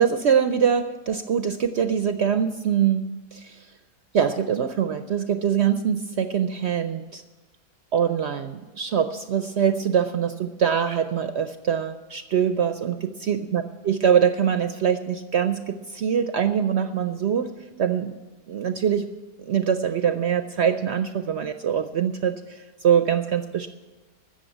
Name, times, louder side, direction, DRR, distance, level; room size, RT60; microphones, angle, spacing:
voice 1, 0.0-3.1 3.3-3.7 4.1-7.2 7.9-17.5 17.8-18.1 18.5-19.1 19.4-23.7, right 8 dB, 65° right, 9 dB, 0.6 m, -23 dB
15.0 x 6.8 x 9.0 m, 1.2 s
omnidirectional pair, 1.7 m